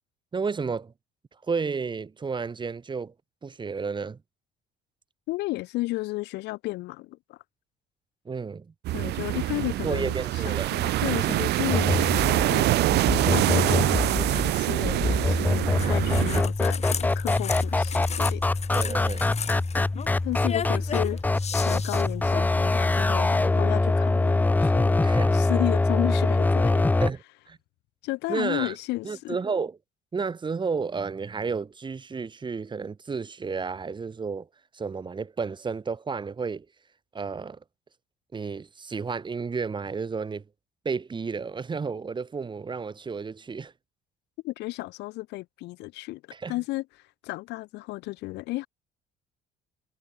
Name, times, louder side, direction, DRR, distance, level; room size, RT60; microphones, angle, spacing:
voice 1, 0.3-0.9 1.5-3.1 3.4-4.2 8.2-8.7 9.8-10.7 15.8-16.1 18.7-19.3 25.0-25.4 27.0-27.6 28.3-28.8 29.0-29.8 30.1-34.5 34.7-36.6 37.1-37.6 38.3-40.4 40.8-43.7 46.3-46.5, right 5 dB, 25° right, 3.2 m, -32 dB
voice 2, 5.3-7.4 8.9-12.9 13.3-18.4 19.7-21.2 21.6-25.0 25.3-26.9 28.0-29.4 44.4-46.2 46.5-46.8 47.2-48.7, left 20 dB, 85° left, 2.5 m, -33 dB
sound 1, 8.8-16.4, right 16 dB, 80° right, 3.5 m, -25 dB
sound 2, 11.7-27.1, left 2 dB, 10° left, 0.5 m, -24 dB
sound 3, 15.8-23.0, left 7 dB, 40° left, 3.1 m, -36 dB
cardioid pair, 110°, 17 cm